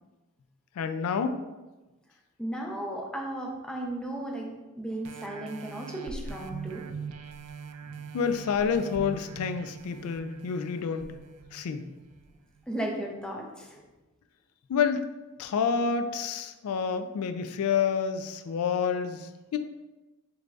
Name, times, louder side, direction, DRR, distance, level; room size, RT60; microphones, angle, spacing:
voice 1, 0.8-1.4 8.1-11.1 11.5-11.9 14.7-15.0 15.4-19.6, left 6 dB, 90° left, 8 dB, 0.3 m, -28 dB
voice 2, 2.4-6.9 12.7-13.8, right 1 dB, 5° left, 0 dB, 0.5 m, -35 dB
sound 1, 5.0-12.2 12.8-12.9, right 5 dB, 80° right, 0.3 m, -42 dB
4.9 x 3.3 x 2.3 m, 1.1 s
head